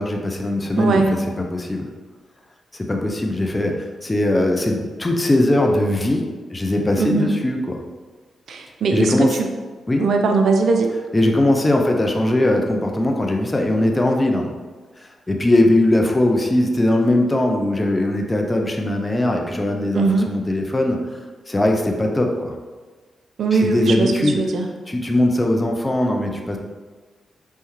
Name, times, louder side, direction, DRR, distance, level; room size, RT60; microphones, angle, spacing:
voice 1, 0.0-1.9 2.7-7.8 8.9-9.4 9.9-10.0 11.1-14.5 15.0-21.1 21.5-22.5 23.6-24.4 24.9-26.6, left 1 dB, 25° left, 2 dB, 0.6 m, -20 dB
voice 2, 0.8-1.2 7.0-7.3 8.5-9.5 10.0-10.9 19.9-20.3 23.4-24.7, right 4 dB, 70° right, 4 dB, 0.5 m, -20 dB
4.3 x 3.4 x 3.2 m, 1.4 s
supercardioid pair, 45°, 0 cm